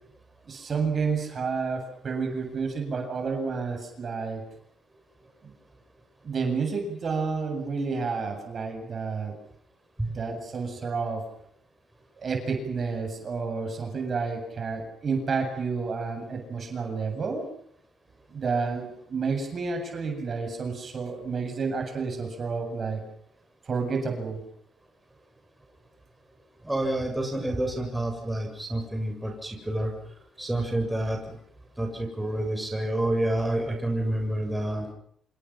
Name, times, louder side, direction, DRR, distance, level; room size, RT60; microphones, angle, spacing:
voice 1, 0.5-4.4 5.4-5.5 6.2-9.3 10.0-11.2 12.2-17.5 18.3-23.0 23.6-24.4, right 4 dB, 45° right, 4 dB, 7.9 m, -30 dB
voice 2, 26.6-29.9 30.4-31.3 31.8-34.9, right 1 dB, 10° right, 3 dB, 7.3 m, -28 dB
28.0 x 27.0 x 6.0 m, 0.68 s
cardioid pair, 90°, 0 cm